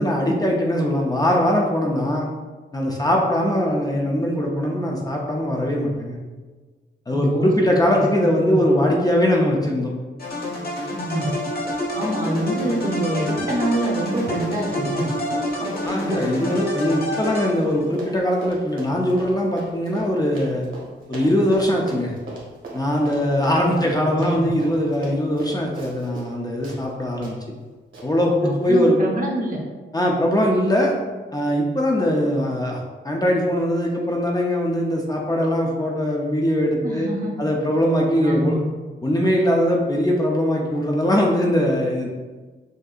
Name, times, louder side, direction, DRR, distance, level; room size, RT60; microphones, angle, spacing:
voice 1, 0.0-2.3 2.7-6.2 7.1-9.9 15.6-20.7 21.1-22.1 22.7-27.4 28.0-29.0 29.9-30.9 31.3-37.1 37.4-38.6 39.0-42.1, equal, 20° left, -2 dB, 0.5 m, -21 dB
voice 2, 7.1-7.5 7.9-8.0 8.4-8.6 10.9-11.3 11.9-15.1 23.7-24.5 28.2-29.6 36.8-37.4 38.2-38.7, right 1 dB, 40° right, -1 dB, 0.8 m, -26 dB
sound 1, 10.2-17.9, left 1 dB, 50° left, 1.0 m, -28 dB
Run, 10.8-11.0 11.3-26.3 26.6-26.8 27.2-27.3 27.9-28.1, right 2 dB, 75° right, 1.3 m, -37 dB
6.2 x 2.7 x 2.4 m, 1.3 s
wide cardioid pair, 160°, 21 cm